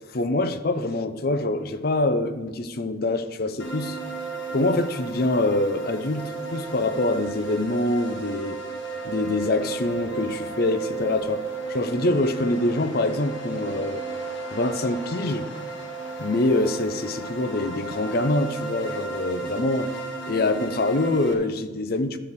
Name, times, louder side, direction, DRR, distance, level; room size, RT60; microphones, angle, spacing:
voice 1, 0.1-4.0 4.5-8.6 9.0-14.0 14.5-15.5 16.2-19.9 20.3-22.2, left 2 dB, 50° left, 0.6 m, -25 dB
sound 1, 3.6-21.3, right 4 dB, 70° left, 1.4 m, -34 dB
12.5 x 4.9 x 6.8 m
head